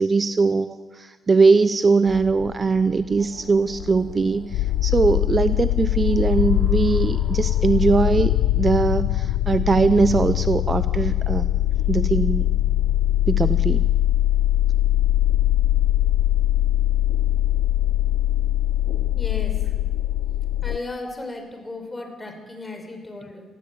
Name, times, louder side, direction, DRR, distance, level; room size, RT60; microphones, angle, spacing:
voice 1, 0.0-11.5 11.9-12.5 13.3-13.9, right 4 dB, 30° right, 12 dB, 0.7 m, -21 dB
sound 1, 2.1-20.8, left 13 dB, 90° left, 0.6 m, -22 dB
sound 2, 3.2-8.4, left 1 dB, ahead, 4.3 m, -46 dB
voice 2, 19.2-19.5 20.6-23.4, left 2 dB, 15° left, 5 dB, 5.3 m, -35 dB
22.5 x 15.5 x 8.7 m, 1.4 s
cardioid pair, 90°, 0 cm